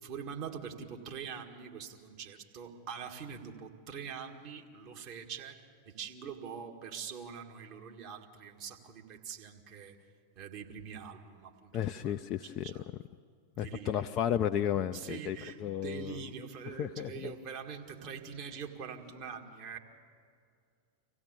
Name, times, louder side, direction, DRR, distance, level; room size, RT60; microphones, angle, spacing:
voice 1, 0.0-5.6 5.9-10.0 10.4-11.7 12.0-12.1 12.4-12.8 13.6-14.1 14.9-15.6 15.8-19.8, right 7 dB, 45° right, 2 dB, 1.9 m, -44 dB
voice 2, 11.7-12.7 13.6-16.2 16.7-17.3, left 10 dB, 35° left, 7 dB, 0.4 m, -33 dB
26.0 x 16.5 x 6.9 m, 2.3 s
figure-of-eight pair, 90°, 0 cm